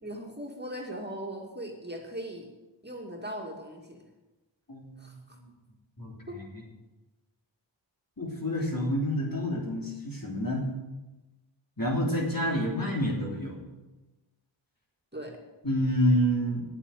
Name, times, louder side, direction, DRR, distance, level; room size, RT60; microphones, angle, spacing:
voice 1, 0.0-2.5 2.8-4.0 5.0-5.4 6.3-6.4 15.1-15.4, right 1 dB, 20° right, 0 dB, 2.3 m, -39 dB
voice 2, 4.7-5.0 6.0-6.4 8.2-10.7 11.8-13.6 15.6-16.6, equal, 45° left, -2 dB, 3.4 m, -28 dB
10.5 x 8.5 x 9.2 m, 1.1 s
wide cardioid pair, 65°, 47 cm